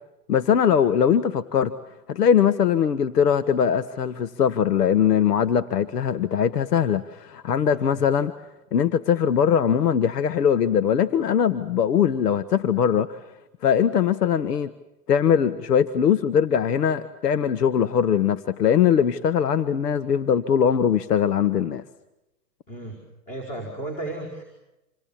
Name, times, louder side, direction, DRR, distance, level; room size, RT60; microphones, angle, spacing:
voice 1, 0.3-1.7 2.1-8.3 8.7-13.2 13.6-14.7 15.1-21.8, left 8 dB, 75° left, 1.5 m, -21 dB
voice 2, 7.8-8.1 22.7-24.4, right 2 dB, 15° left, 5.1 m, -35 dB
27.5 x 26.5 x 7.3 m
hypercardioid pair, 145°, 47 cm